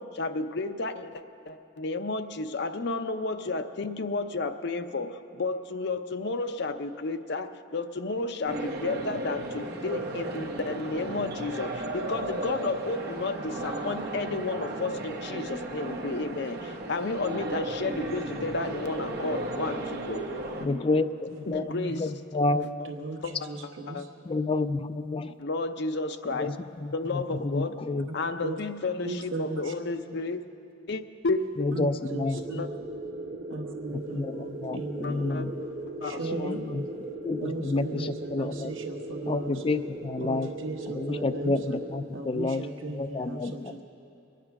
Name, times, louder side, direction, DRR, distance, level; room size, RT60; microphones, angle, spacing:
voice 1, 0.0-20.3 21.5-22.1 23.2-23.5 23.9-24.0 25.4-26.5 26.9-27.8 28.1-30.4 30.9-31.7 32.5-32.7 35.0-35.7 36.0-36.2, left 3 dB, 60° left, 8 dB, 0.7 m, -32 dB
sound 1, 8.5-20.7, right 1 dB, 55° right, 1.3 m, -34 dB
voice 2, 20.6-21.6 22.0-22.7 24.3-25.3 26.3-28.1 31.6-32.4 33.9-35.6 36.3-36.9 37.2-38.7 39.3-40.5 40.9-43.8, left 3 dB, 30° left, 11 dB, 0.4 m, -30 dB
voice 3, 21.7-22.0 22.5-24.1 28.1-28.6 29.0-29.7 31.7-32.7 33.5-35.4 36.0-36.6 37.4-39.6 40.2-41.5 42.1-43.8, right 2 dB, 85° right, 1 dB, 1.4 m, -37 dB
sound 2, 32.3-42.0, right 2 dB, 40° right, 1.9 m, -38 dB
22.5 x 9.3 x 5.9 m, 2.9 s
head